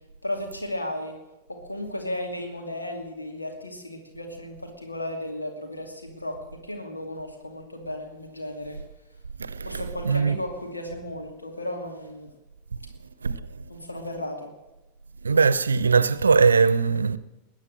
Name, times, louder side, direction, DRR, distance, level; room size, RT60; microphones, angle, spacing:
voice 1, 0.2-1.1 1.6-6.4 6.6-8.8 9.7-12.3 13.7-14.5, left 1 dB, 80° left, 2.4 m, -34 dB
voice 2, 9.4-10.4 13.2-13.4 15.2-17.2, right 5 dB, 75° right, 0.7 m, -21 dB
21.0 x 9.1 x 7.6 m
figure-of-eight pair, 90°, 0 cm